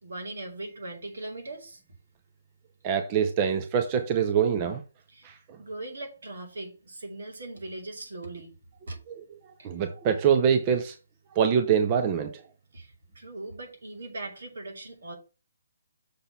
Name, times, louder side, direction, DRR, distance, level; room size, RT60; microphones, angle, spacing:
voice 1, 0.0-1.8 5.1-5.3 5.6-8.6 8.9-9.0 9.6-9.7 12.7-15.2, right 2 dB, 75° right, 2.7 m, -39 dB
voice 2, 2.8-4.8 5.2-5.3 9.1-9.2 9.6-11.0 11.3-12.4, right 7 dB, 25° right, 0.6 m, -24 dB
6.6 x 3.8 x 5.8 m
hypercardioid pair, 165°, 0 cm